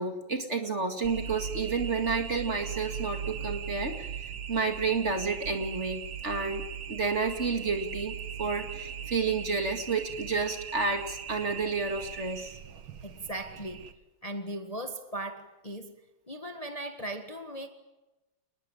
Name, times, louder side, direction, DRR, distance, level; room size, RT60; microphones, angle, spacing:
voice 1, 0.0-4.1 4.5-12.6, right 4 dB, 35° right, 5 dB, 2.4 m, -30 dB
sound 1, 1.0-13.9, right 8 dB, 90° right, 2.2 m, -39 dB
voice 2, 13.0-13.9 14.2-15.9 16.3-17.7, right 1 dB, 20° left, 6 dB, 1.5 m, -38 dB
28.0 x 20.5 x 9.0 m, 1.0 s
omnidirectional pair, 2.2 m